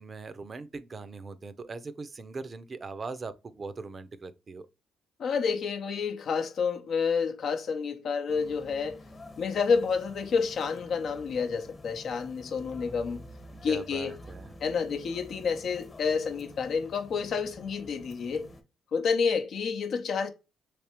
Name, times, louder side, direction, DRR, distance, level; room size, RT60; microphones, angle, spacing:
voice 1, 0.0-4.7 13.7-14.5, right 4 dB, 40° right, 0.5 m, -40 dB
voice 2, 5.2-9.0 9.4-13.2 13.6-14.2 14.6-18.5 18.9-20.3, left 5 dB, 65° left, 0.6 m, -29 dB
sound 1, 8.3-18.6, left 1 dB, 35° left, 1.1 m, -49 dB
3.3 x 3.2 x 3.0 m
supercardioid pair, 65°, 0 cm